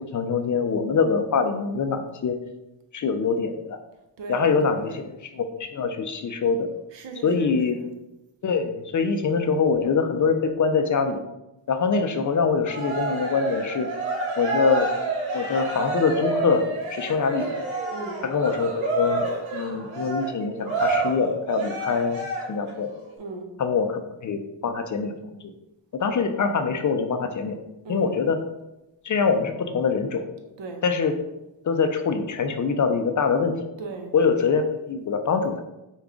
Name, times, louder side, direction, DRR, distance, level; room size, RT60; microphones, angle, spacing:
voice 1, 0.0-2.4 2.9-3.8 4.3-6.7 7.2-7.9 8.4-11.2 11.7-13.9 14.4-14.9 15.3-17.6 18.2-22.9 23.6-25.1 25.4-25.5 26.0-27.6 27.9-28.4 29.0-30.3 30.8-31.1 31.6-33.6 34.1-35.6, left 5 dB, 40° left, 7 dB, 0.4 m, -24 dB
voice 2, 4.2-5.0 6.9-7.9 17.9-18.2 23.2-23.5 27.8-28.2 30.6-30.8 33.8-34.1, right 3 dB, 65° right, 4 dB, 0.8 m, -37 dB
Cheering, 12.6-22.7, right 3 dB, 85° right, 1.2 m, -29 dB
4.9 x 2.3 x 3.5 m, 0.95 s
cardioid pair, 80°, 47 cm